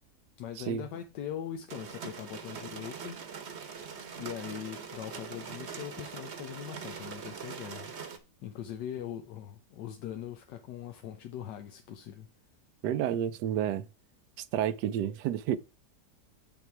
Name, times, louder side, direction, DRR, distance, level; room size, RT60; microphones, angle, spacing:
voice 1, 0.4-3.2 4.2-7.9 8.4-12.3, left 10 dB, 85° left, 1.4 m, -41 dB
sound 1, 1.7-8.2, right 6 dB, 45° right, 1.1 m, -42 dB
voice 2, 12.8-13.9 14.4-15.6, right 10 dB, 80° right, 1.2 m, -30 dB
7.1 x 5.9 x 4.6 m
omnidirectional pair, 1.8 m